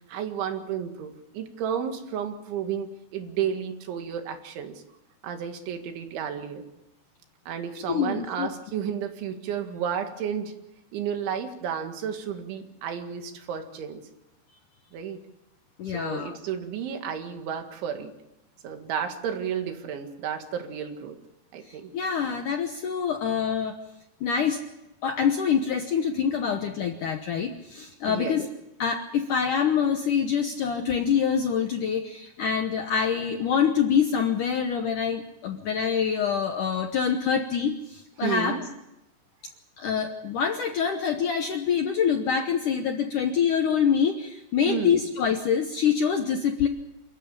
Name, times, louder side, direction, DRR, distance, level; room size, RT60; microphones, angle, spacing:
voice 1, 0.1-4.7 5.2-6.6 7.5-10.5 10.9-14.0 14.9-15.2 15.9-18.1 18.6-21.2 21.5-21.9 28.1-28.4 38.2-38.6 44.7-45.0, right 8 dB, 85° right, 6 dB, 4.3 m, -32 dB
voice 2, 7.9-8.5 15.8-16.4 21.6-23.8 24.2-24.6 25.0-28.5 28.8-38.6 39.8-46.7, left 7 dB, 75° left, 5 dB, 1.9 m, -25 dB
28.0 x 14.0 x 8.8 m, 0.92 s
omnidirectional pair, 5.3 m